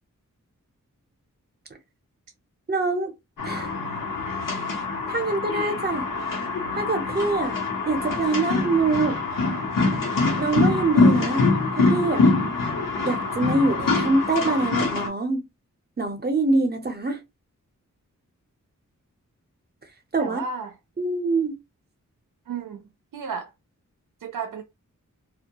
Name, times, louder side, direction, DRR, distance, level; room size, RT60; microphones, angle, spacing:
voice 1, 2.7-3.1 3.4-3.7 5.1-6.1 6.8-9.2 10.4-11.4 11.8-12.3 13.0-15.4 16.0-17.2 20.1-20.4 21.0-21.5, right 3 dB, 30° right, 0.6 m, -24 dB
sound 1, 3.4-15.1, left 3 dB, 90° left, 1.0 m, -24 dB
voice 2, 20.2-20.8 22.5-23.5 24.2-24.6, right 5 dB, 85° right, 0.5 m, -33 dB
2.3 x 2.2 x 2.8 m
wide cardioid pair, 110°, 32 cm